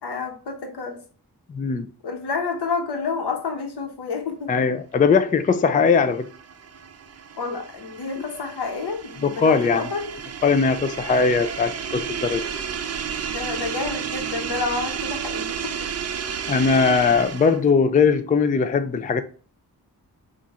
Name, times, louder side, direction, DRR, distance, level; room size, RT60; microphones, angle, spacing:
voice 1, 0.0-1.0 2.0-4.5 7.4-10.1 13.3-15.7, left 4 dB, 85° left, 1.1 m, -29 dB
voice 2, 1.5-1.9 4.5-6.3 9.2-9.9 10.4-12.4 16.5-19.2, left 5 dB, 20° left, 0.3 m, -20 dB
sound 1, 5.8-17.7, right 7 dB, 40° right, 0.4 m, -32 dB
4.8 x 2.5 x 4.1 m
wide cardioid pair, 110°, 40 cm